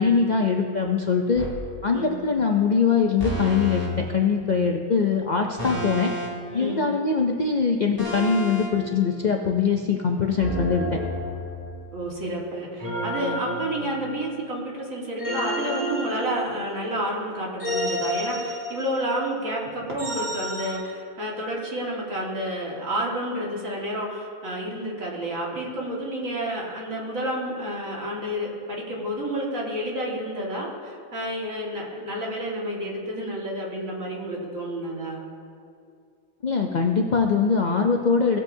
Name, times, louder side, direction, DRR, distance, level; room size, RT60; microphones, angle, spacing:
voice 1, 0.0-1.5 1.8-6.1 6.5-10.9 36.4-38.4, left 5 dB, 50° left, 1 dB, 0.5 m, -22 dB
sound 1, 1.4-1.6 3.2-3.9 5.6-6.5 8.0-8.7 10.4-11.9 12.8-14.4 15.2-16.8 17.6-19.1 20.0-20.7, equal, 15° right, 2.7 m, -30 dB
voice 2, 1.9-2.3 6.5-6.9 11.9-35.3, right 1 dB, 65° right, -3 dB, 2.2 m, -30 dB
18.0 x 8.0 x 2.7 m, 2.4 s
omnidirectional pair, 1.5 m